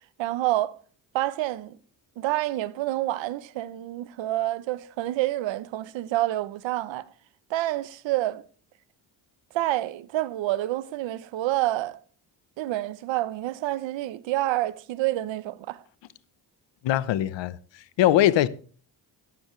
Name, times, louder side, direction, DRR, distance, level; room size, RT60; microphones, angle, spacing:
voice 1, 0.2-0.8 1.1-1.8 2.2-7.0 7.5-8.4 9.5-12.0 12.6-15.8, right 15 dB, 85° right, 0.8 m, -28 dB
voice 2, 16.8-18.5, left 13 dB, 75° left, 0.9 m, -22 dB
14.0 x 12.5 x 3.2 m
cardioid pair, 85°, 44 cm